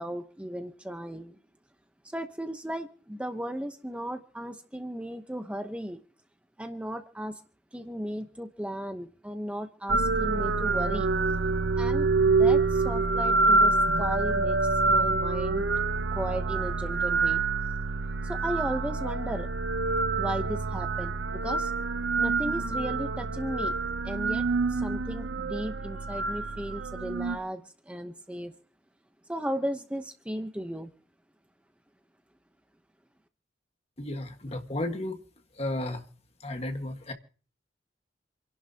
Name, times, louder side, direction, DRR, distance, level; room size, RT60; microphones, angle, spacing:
voice 1, 0.0-1.4 2.0-6.0 6.6-7.4 7.7-11.1 11.8-15.7 16.1-17.4 18.2-19.5 20.2-21.7 22.2-23.7 24.0-24.4 24.7-28.5 29.3-30.9, equal, 5° right, 0.8 m, -35 dB
sound 1, 9.9-27.4, right 3 dB, 85° right, 0.7 m, -26 dB
voice 2, 34.0-35.2 35.6-36.0 36.4-37.1, left 1 dB, 35° left, 1.6 m, -33 dB
28.0 x 11.5 x 2.8 m
head